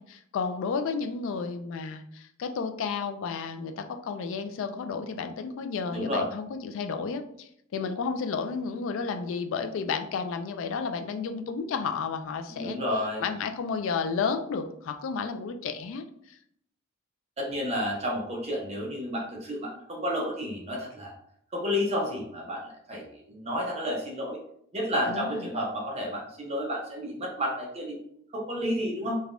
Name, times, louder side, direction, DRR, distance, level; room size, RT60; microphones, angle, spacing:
voice 1, 0.0-12.8 13.2-16.0 25.1-25.5, left 5 dB, 65° left, 7 dB, 0.3 m, -32 dB
voice 2, 5.9-6.3 12.5-13.2 17.4-21.1 21.5-24.4 24.7-28.0 28.3-29.2, equal, 30° right, -2 dB, 0.6 m, -31 dB
3.3 x 2.2 x 2.4 m, 0.70 s
head